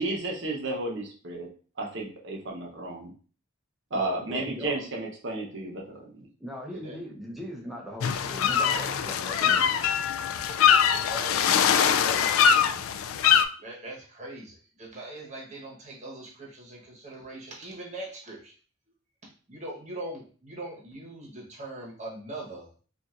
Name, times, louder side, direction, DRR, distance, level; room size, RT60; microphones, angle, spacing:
voice 1, 0.0-1.5 1.8-3.1 3.9-6.3, right 2 dB, 60° right, 0 dB, 0.9 m, -32 dB
voice 2, 3.9-4.8 6.4-9.7, equal, ahead, -2 dB, 0.7 m, -39 dB
sound 1, 8.0-13.5, left 8 dB, 80° left, 0.3 m, -23 dB
voice 3, 10.9-11.7 12.0-12.6 13.6-18.5 19.5-22.7, right 2 dB, 35° right, -3 dB, 1.1 m, -41 dB
4.2 x 2.5 x 2.5 m, 0.40 s
head